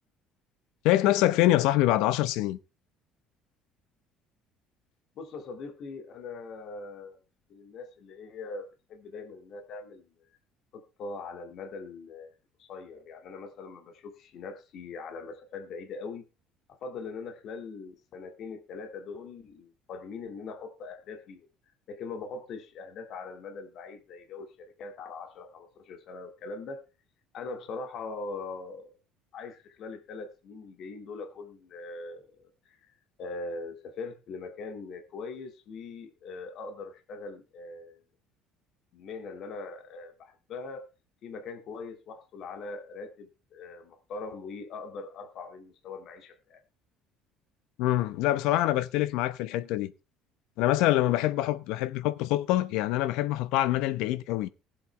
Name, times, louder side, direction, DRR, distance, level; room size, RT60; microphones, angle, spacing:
voice 1, 0.8-2.6 47.8-49.9 50.6-54.5, left 15 dB, 75° left, 0.9 m, -25 dB
voice 2, 5.2-7.2 7.5-10.1 10.7-12.3 12.6-16.2 16.8-21.5 21.9-26.8 27.3-28.9 29.3-38.0 38.9-40.9 41.2-46.6, left 4 dB, 50° left, 2.1 m, -41 dB
19.5 x 7.9 x 3.3 m
cardioid pair, 150°, 0 cm